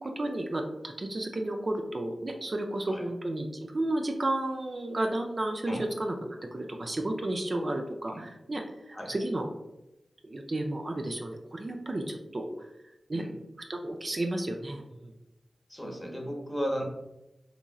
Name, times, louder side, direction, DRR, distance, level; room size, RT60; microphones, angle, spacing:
voice 1, 0.0-9.5 10.2-12.5 13.1-13.2 13.7-15.1, right 1 dB, 50° right, 3 dB, 0.3 m, -32 dB
voice 2, 15.7-16.8, equal, 15° left, 0 dB, 0.8 m, -35 dB
3.0 x 2.5 x 2.3 m, 0.91 s
cardioid pair, 45°, 0 cm